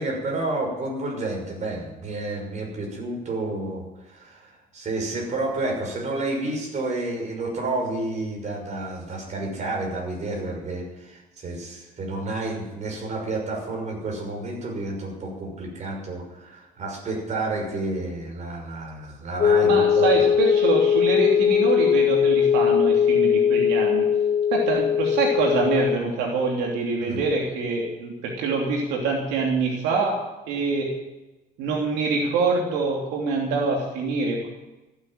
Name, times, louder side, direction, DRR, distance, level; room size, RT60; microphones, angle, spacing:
voice 1, 0.0-20.1 27.0-27.3, right 2 dB, 45° right, 1 dB, 6.1 m, -30 dB
sound 1, 19.4-26.0, left 8 dB, 45° left, 1.4 m, -20 dB
voice 2, 19.6-24.1 24.5-30.2 30.5-30.9 31.6-34.5, right 4 dB, 90° right, -1 dB, 3.0 m, -25 dB
15.0 x 9.4 x 9.1 m, 1.0 s
cardioid pair, 110°, 17 cm